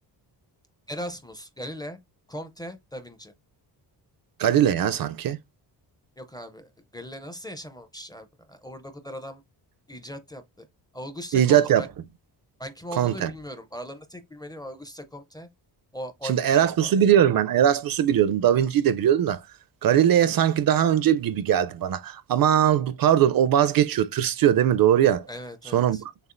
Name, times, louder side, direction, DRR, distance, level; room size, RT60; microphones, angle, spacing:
voice 1, 0.9-2.0 2.3-3.3 6.2-9.4 9.9-10.7 10.9-11.9 12.6-15.5 15.9-16.9 25.3-26.0, equal, 10° left, 0.5 m, -39 dB
voice 2, 4.4-5.4 11.3-11.8 13.0-13.3 16.2-19.4 19.8-25.3 25.7-26.0, right 10 dB, 55° right, 0.5 m, -20 dB
6.6 x 2.4 x 2.4 m
wide cardioid pair, 140°, 42 cm